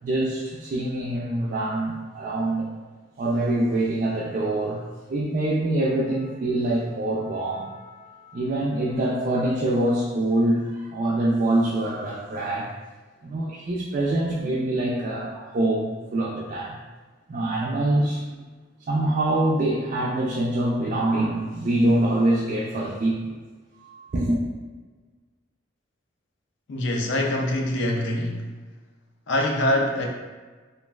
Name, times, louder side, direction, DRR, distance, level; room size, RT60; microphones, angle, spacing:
voice 1, 0.0-2.7 3.2-4.8 5.1-12.7 13.2-16.8 17.3-18.2 18.9-23.3 23.7-24.4, right 1 dB, 45° right, -6 dB, 0.3 m, -25 dB
voice 2, 26.7-28.4 29.3-30.1, left 1 dB, 65° left, 1 dB, 0.4 m, -24 dB
3.0 x 2.3 x 2.3 m, 1.3 s
head